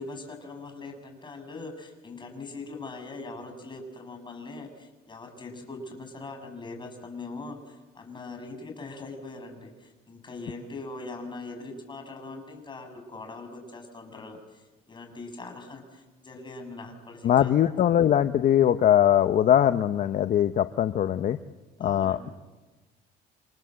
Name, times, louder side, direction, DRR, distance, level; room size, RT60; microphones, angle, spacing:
voice 1, 0.0-17.5 21.8-22.3, left 3 dB, 25° left, 4 dB, 7.2 m, -41 dB
voice 2, 17.2-21.4 21.8-22.3, left 10 dB, 55° left, 10 dB, 0.9 m, -21 dB
29.0 x 27.0 x 7.7 m, 1.2 s
cardioid pair, 110°, 17 cm